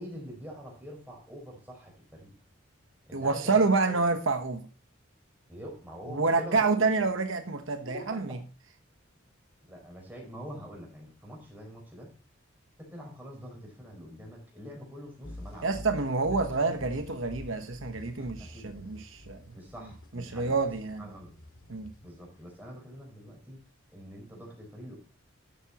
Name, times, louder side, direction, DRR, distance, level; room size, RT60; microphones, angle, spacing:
voice 1, 0.0-2.3 3.1-4.0 5.5-7.1 7.8-8.2 9.7-12.1 12.8-15.7 16.3-16.8 18.2-18.7 19.5-20.5 21.0-21.3 22.0-25.0, equal, 10° right, -1 dB, 4.6 m, -45 dB
voice 2, 3.1-4.7 6.1-8.4 15.6-19.4 20.1-21.0 21.7-21.9, right 3 dB, 70° right, 7 dB, 1.1 m, -28 dB
sound 1, 15.2-22.6, left 1 dB, 90° left, 2.1 m, -47 dB
13.0 x 7.1 x 2.9 m, 0.36 s
head